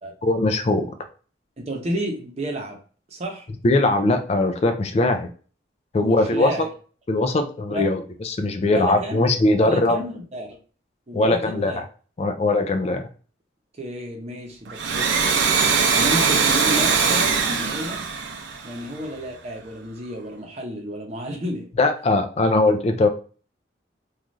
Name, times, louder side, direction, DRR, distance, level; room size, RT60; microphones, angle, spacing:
voice 1, 0.2-0.9 3.6-5.3 5.9-6.7 7.1-10.0 11.1-11.8 12.2-13.0 21.8-23.1, left 2 dB, 35° left, 6 dB, 0.3 m, -20 dB
voice 2, 1.6-2.8 3.1-3.5 6.0-6.7 7.7-7.9 8.6-9.3 9.6-10.6 11.1-11.8 13.8-15.2 15.9-18.0 18.6-21.7, right 1 dB, 35° right, 1 dB, 0.7 m, -31 dB
Domestic sounds home sounds, 14.7-19.2, right 5 dB, 80° right, 0.5 m, -21 dB
3.1 x 2.4 x 2.5 m, 0.39 s
head